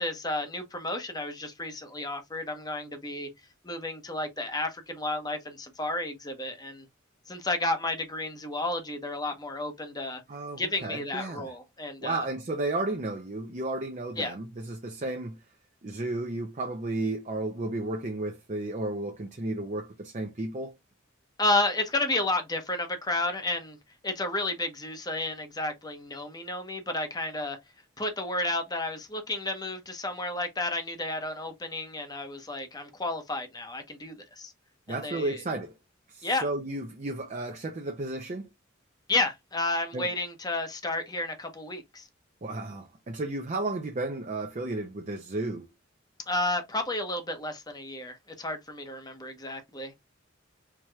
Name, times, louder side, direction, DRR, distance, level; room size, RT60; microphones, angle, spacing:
voice 1, 0.0-3.3 3.6-6.8 7.3-10.2 10.6-12.3 14.1-14.3 21.4-23.8 24.0-27.6 28.0-34.5 34.9-35.4 36.2-36.5 39.1-42.1 46.3-49.9, left 2 dB, 20° left, 0.9 m, -32 dB
voice 2, 10.3-11.5 12.0-15.3 15.8-20.7 34.9-35.7 36.1-38.5 39.9-40.1 42.4-45.7, right 2 dB, 40° right, 0.6 m, -33 dB
4.6 x 2.9 x 2.3 m
head